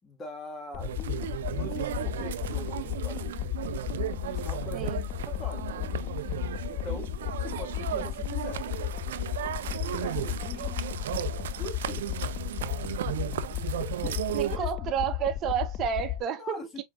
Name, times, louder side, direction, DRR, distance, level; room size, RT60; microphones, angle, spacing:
voice 1, 0.0-3.6 4.2-4.9 5.2-6.1 6.7-8.7 9.9-10.9 11.6-12.1 13.8-14.9 16.4-16.8, left 2 dB, 25° left, 1.7 m, -43 dB
sound 1, 0.7-16.2, left 14 dB, 40° left, 0.4 m, -34 dB
sound 2, 0.8-14.6, right 11 dB, 75° right, 0.4 m, -35 dB
voice 2, 4.7-5.0 14.3-16.8, right 8 dB, 40° right, 0.8 m, -31 dB
4.4 x 3.6 x 2.4 m
hypercardioid pair, 105°, 0 cm